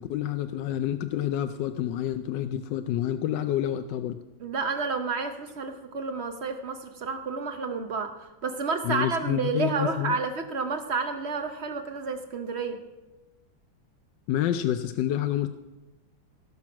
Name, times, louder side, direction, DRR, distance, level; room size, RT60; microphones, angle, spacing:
voice 1, 0.0-4.2 8.8-10.2 14.3-15.5, left 11 dB, 75° left, 9 dB, 1.1 m, -28 dB
voice 2, 4.4-12.8, right 4 dB, 60° right, 7 dB, 0.7 m, -30 dB
17.5 x 6.0 x 6.0 m, 1.1 s
omnidirectional pair, 2.1 m